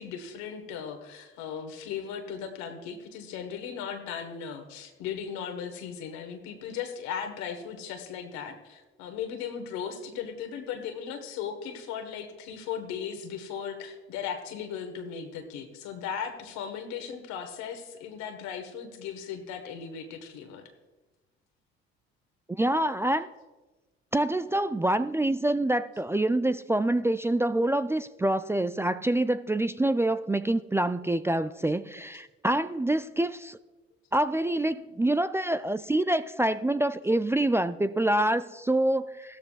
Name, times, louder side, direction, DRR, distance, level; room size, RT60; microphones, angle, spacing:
voice 1, 0.0-20.6, left 7 dB, 70° left, 6 dB, 1.5 m, -37 dB
voice 2, 22.6-23.3 24.1-33.6 34.1-39.4, right 1 dB, 10° right, 13 dB, 0.3 m, -26 dB
15.5 x 13.0 x 2.4 m, 1.2 s
hypercardioid pair, 55°, 29 cm